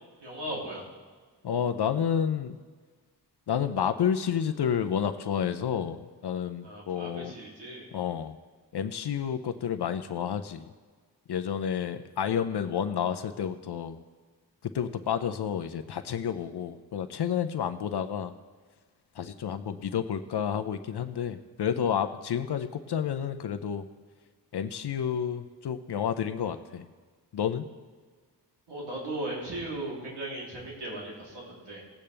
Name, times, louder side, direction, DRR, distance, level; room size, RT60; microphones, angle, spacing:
voice 1, 0.2-0.8 6.6-7.9 28.7-31.8, right 1 dB, 80° right, -5 dB, 3.3 m, -37 dB
voice 2, 1.4-2.6 3.5-7.3 7.9-8.4 8.7-10.7 11.3-14.0 14.6-18.3 19.2-23.8 24.5-26.9 27.3-27.7, left 8 dB, 70° left, 9 dB, 0.7 m, -30 dB
19.0 x 8.6 x 3.4 m, 1.5 s
wide cardioid pair, 100°, 41 cm